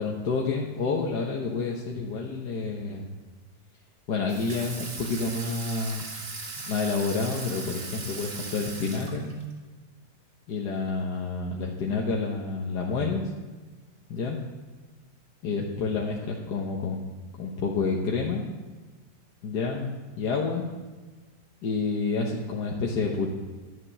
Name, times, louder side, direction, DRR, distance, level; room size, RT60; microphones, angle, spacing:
voice 1, 0.0-3.0 4.1-6.1 6.7-9.4 10.5-13.3 14.1-14.4 15.4-17.0 17.4-18.5 19.4-20.6 21.6-23.3, left 4 dB, 70° left, -2 dB, 1.7 m, -29 dB
Water tap faucet / Sink (filling or washing), 4.3-9.5, right 3 dB, 50° right, 1.9 m, -38 dB
11.0 x 7.6 x 8.8 m, 1.3 s
omnidirectional pair, 1.9 m